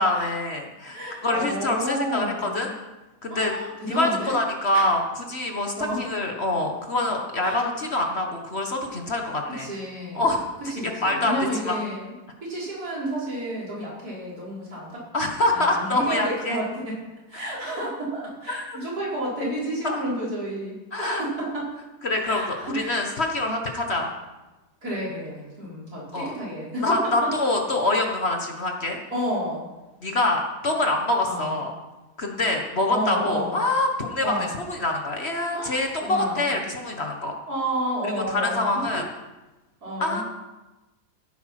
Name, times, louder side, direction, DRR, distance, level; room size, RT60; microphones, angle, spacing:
voice 1, 0.0-2.7 3.2-3.5 3.9-5.0 5.3-9.7 10.1-10.4 10.8-11.3 11.6-11.8 15.1-16.6 18.5-18.6 19.8-20.0 20.9-21.3 22.0-24.1 26.1-26.3 26.8-29.0 30.0-31.7 32.2-37.3 38.0-39.0 40.0-40.2, left 2 dB, 40° left, 2 dB, 1.5 m, -25 dB
voice 2, 0.9-2.7 3.3-4.4 4.7-4.8 5.8-6.0 7.4-7.6 9.5-10.2 10.7-12.1 12.4-15.0 15.5-17.0 17.3-21.7 22.2-23.0 24.8-27.3 29.1-29.7 31.2-31.6 32.9-33.6 34.2-34.5 35.5-36.4 37.5-39.0 39.8-40.2, right 1 dB, 65° right, -6 dB, 5.2 m, -31 dB
15.0 x 9.4 x 5.9 m, 1.1 s
omnidirectional pair, 1.7 m